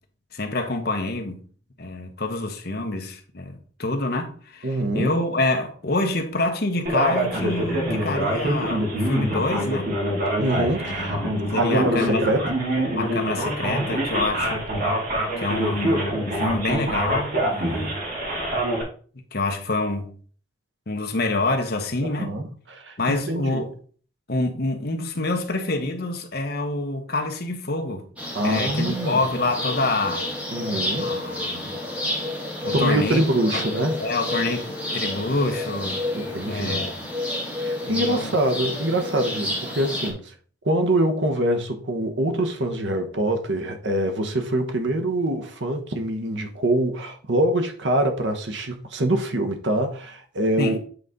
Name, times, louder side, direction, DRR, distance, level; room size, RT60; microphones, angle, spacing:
voice 1, 0.3-1.4 1.8-9.9 10.9-12.3 13.0-14.7 15.4-18.0 19.3-20.1 20.9-22.4 23.0-23.7 24.3-28.1 28.4-30.3 31.0-31.9 32.6-33.2 33.5-33.6 34.0-36.0 36.5-36.9 37.8-38.3 50.6-50.8, left 2 dB, 60° left, 1.2 m, -27 dB
voice 2, 4.6-5.1 10.4-11.2 11.6-12.5 22.1-22.5 22.7-23.7 28.3-29.3 30.5-31.1 32.7-34.0 36.1-36.9 37.6-40.3 40.6-50.8, right 1 dB, 90° right, 1.2 m, -24 dB
Male speech man speaking, 6.9-18.8, right 1 dB, 55° right, 2.4 m, -25 dB
sound 1, 28.2-40.1, left 1 dB, 10° right, 2.0 m, -30 dB
8.4 x 4.0 x 3.7 m
head